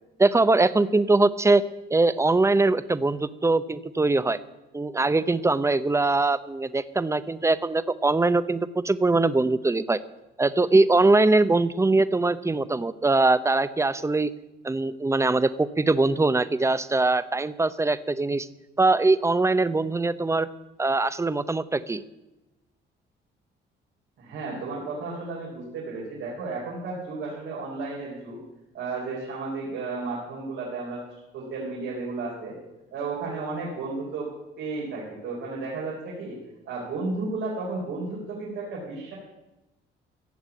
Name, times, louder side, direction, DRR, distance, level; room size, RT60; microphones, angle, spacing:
voice 1, 0.2-1.6 1.9-4.4 4.7-10.0 10.4-14.3 14.6-18.5 18.8-20.5 20.8-22.0, right 3 dB, 15° right, 14 dB, 0.7 m, -22 dB
voice 2, 24.2-28.4 28.7-31.0 31.3-32.6 32.9-34.3 34.6-36.4 36.7-39.1, right 3 dB, 90° right, -5 dB, 4.4 m, -33 dB
15.5 x 7.3 x 8.4 m, 0.98 s
cardioid pair, 90°, 20 cm